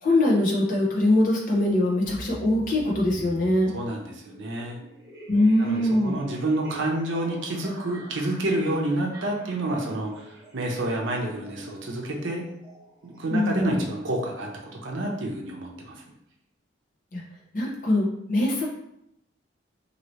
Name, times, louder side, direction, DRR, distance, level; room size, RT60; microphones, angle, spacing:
voice 1, 0.0-3.7 5.3-6.2 13.3-13.8 17.1-17.2 17.5-18.6, left 1 dB, 45° left, -3 dB, 0.8 m, -22 dB
sound 1, 1.5-14.1, right 1 dB, 20° right, 1.1 m, -45 dB
voice 2, 3.7-4.8 5.6-12.4 13.0-16.0, right 1 dB, 75° right, 0 dB, 0.6 m, -29 dB
2.8 x 2.7 x 3.1 m, 0.80 s
head